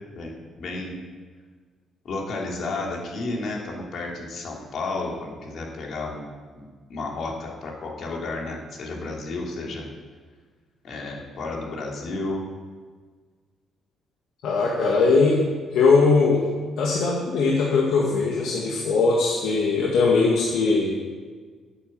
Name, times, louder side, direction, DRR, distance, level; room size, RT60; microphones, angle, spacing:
voice 1, 0.1-0.9 2.0-6.3 6.6-6.7 6.9-9.9 10.8-12.4, left 2 dB, 65° left, -1 dB, 3.1 m, -32 dB
voice 2, 14.4-15.5 15.7-16.5 16.8-20.9, left 4 dB, 80° left, -3 dB, 2.0 m, -20 dB
12.0 x 8.4 x 7.6 m, 1.5 s
cardioid pair, 90°, 0 cm